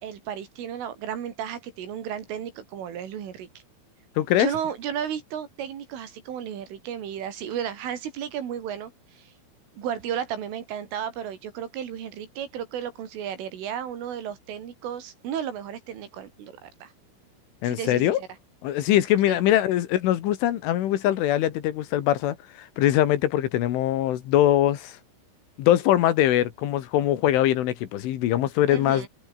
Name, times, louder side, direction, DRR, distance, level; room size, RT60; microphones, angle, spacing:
voice 1, 0.0-3.5 4.4-9.2 9.8-16.9 17.6-18.3 19.3-19.4 28.7-29.1, right 9 dB, 75° right, 5.7 m, -33 dB
voice 2, 4.2-4.5 17.6-18.2 18.6-25.0 25.6-29.1, left 12 dB, 75° left, 4.2 m, -22 dB
omnidirectional pair, 5.7 m